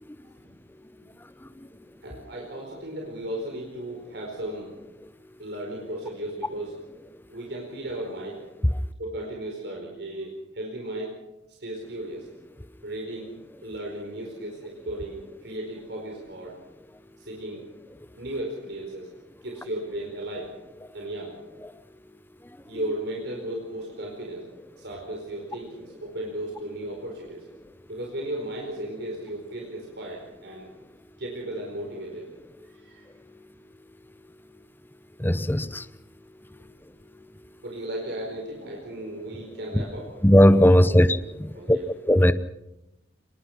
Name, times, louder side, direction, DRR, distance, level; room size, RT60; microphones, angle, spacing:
voice 1, 2.0-4.7 5.4-6.9 7.3-8.5 9.0-11.2 11.6-12.3 12.8-13.3 13.6-16.6 17.2-17.7 18.2-19.1 19.4-20.5 20.9-21.4 22.7-27.5 27.9-30.7 31.2-32.3 32.6-33.1 37.6-40.1 40.8-41.9, right 1 dB, 65° right, 0 dB, 4.6 m, -35 dB
voice 2, 35.2-35.8 40.2-41.1 41.7-41.8 42.1-42.3, equal, 10° left, 13 dB, 0.7 m, -16 dB
24.5 x 21.0 x 6.0 m, 0.92 s
head